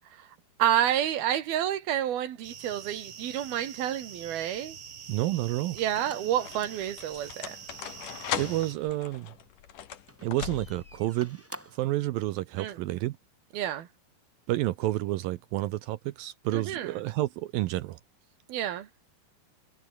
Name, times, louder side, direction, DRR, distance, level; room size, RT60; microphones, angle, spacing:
voice 1, 0.6-4.8 5.8-7.6 12.6-12.8 13.5-13.9 16.5-16.9 18.5-18.9, right 11 dB, 65° right, 3.4 m, -29 dB
sound 1, 2.4-8.7, right 7 dB, 40° right, 2.2 m, -45 dB
sound 2, 4.2-4.7 5.5-11.0, left 10 dB, 55° left, 3.0 m, -39 dB
voice 2, 5.1-5.8 8.4-9.3 10.2-11.4 11.7-13.2 14.5-18.0, right 17 dB, 80° right, 2.0 m, -30 dB
sound 3, 6.0-9.0 10.0-12.0, equal, 5° right, 4.0 m, -51 dB
omnidirectional pair, 5.0 m